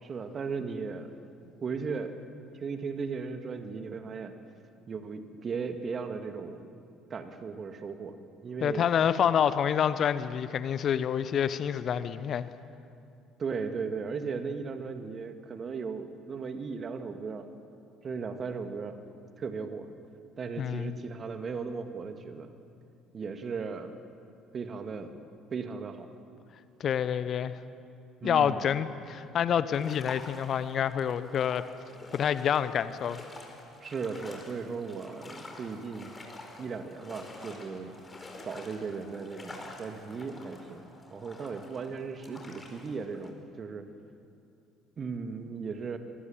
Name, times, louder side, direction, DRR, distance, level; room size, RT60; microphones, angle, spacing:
voice 1, 0.0-1.1 1.6-2.1 2.5-4.4 4.9-6.7 7.1-8.2 8.4-8.8 13.4-17.5 18.0-19.0 19.4-19.9 20.4-22.5 23.1-24.0 24.5-25.2 25.5-26.1 28.2-28.6 33.8-36.1 36.6-37.9 38.4-40.8 41.1-43.9 45.0-46.0, right 5 dB, 35° right, 7 dB, 2.1 m, -36 dB
voice 2, 8.6-12.5 20.6-20.9 26.8-27.6 28.2-31.6 32.1-33.2, left 8 dB, 45° left, 14 dB, 1.1 m, -27 dB
sound 1, 29.7-43.3, left 2 dB, 20° left, 4.8 m, -48 dB
25.0 x 24.0 x 7.4 m, 2.6 s
figure-of-eight pair, 55°, 0 cm